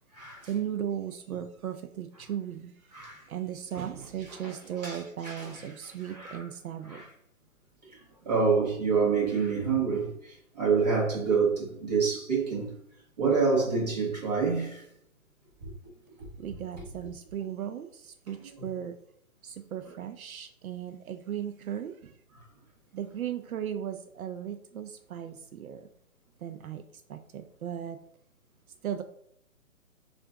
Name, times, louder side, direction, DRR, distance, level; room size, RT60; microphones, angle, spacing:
voice 1, 0.2-2.7 3.3-7.0 16.4-19.0 19.4-22.1 22.9-25.8 26.4-26.8 27.1-28.0 28.8-29.0, right 10 dB, 80° right, 0.5 m, -36 dB
voice 2, 4.8-5.7 6.0-6.5 6.9-7.1 8.2-12.7 13.2-14.8 15.6-15.7 18.6-18.7, right 5 dB, 30° right, 1.0 m, -27 dB
3.7 x 2.5 x 3.3 m
hypercardioid pair, 170°, 42 cm